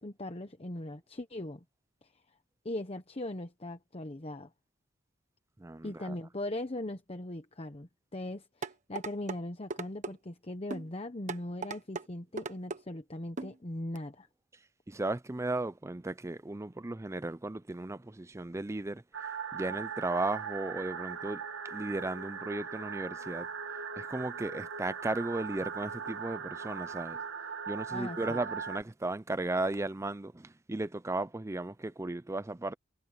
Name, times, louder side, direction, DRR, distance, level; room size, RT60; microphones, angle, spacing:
voice 1, 0.0-1.6 2.6-4.5 5.8-14.3 27.9-28.4, left 1 dB, 30° left, 1.0 m, -39 dB
voice 2, 5.6-6.1 14.9-19.0 19.5-23.5 24.0-27.2 27.7-32.7, right 2 dB, 15° right, 0.5 m, -35 dB
sound 1, 8.6-9.4 9.7-10.1 10.7-10.9 11.3-12.1 12.4-12.8 13.4-13.5 14.0-14.1, right 3 dB, 40° right, 1.4 m, -37 dB
sound 2, 19.1-28.8, right 6 dB, 80° right, 1.9 m, -39 dB
head